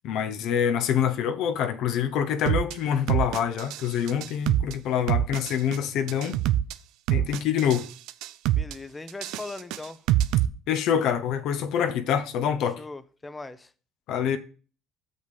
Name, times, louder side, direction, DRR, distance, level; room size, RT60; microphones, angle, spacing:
voice 1, 0.0-6.4 7.1-7.9 10.7-12.8 14.1-14.4, left 8 dB, 70° left, 0.8 m, -26 dB
sound 1, 2.5-2.7 3.1-4.7 5.1-5.8 6.1-6.7 7.1-7.8 8.1-8.7 9.1-10.5, right 13 dB, 75° right, 0.4 m, -24 dB
voice 2, 8.5-10.0 12.8-13.7, left 3 dB, 15° left, 0.7 m, -39 dB
6.5 x 5.4 x 5.3 m
supercardioid pair, 80°, 0 cm